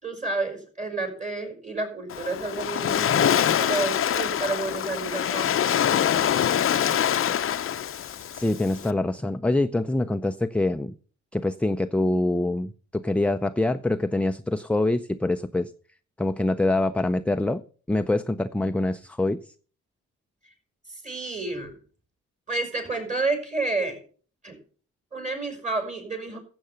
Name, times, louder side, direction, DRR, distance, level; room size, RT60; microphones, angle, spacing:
voice 1, 0.0-5.6 20.9-21.8 22.5-24.0 24.4-24.6 25.1-26.4, right 3 dB, 25° right, 5.3 m, -30 dB
Waves surf, 2.1-8.9, left 9 dB, 45° left, 0.7 m, -24 dB
voice 2, 8.3-10.9 11.3-15.7 16.2-17.6 17.9-19.4, left 2 dB, 5° left, 0.5 m, -25 dB
14.0 x 7.9 x 5.6 m
cardioid pair, 90°, 30 cm